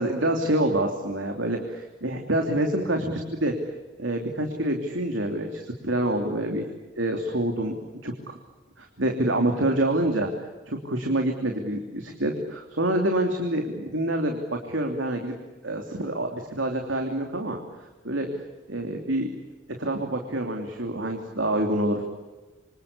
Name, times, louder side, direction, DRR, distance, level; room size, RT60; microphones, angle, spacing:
voice 1, 0.0-3.5 4.0-6.7 7.0-7.8 8.0-8.1 8.8-10.3 10.7-15.4 15.6-17.6 18.0-18.3 18.7-19.3 19.8-22.0, right 1 dB, 80° right, 3 dB, 3.1 m, -26 dB
27.5 x 25.5 x 8.4 m, 1.2 s
head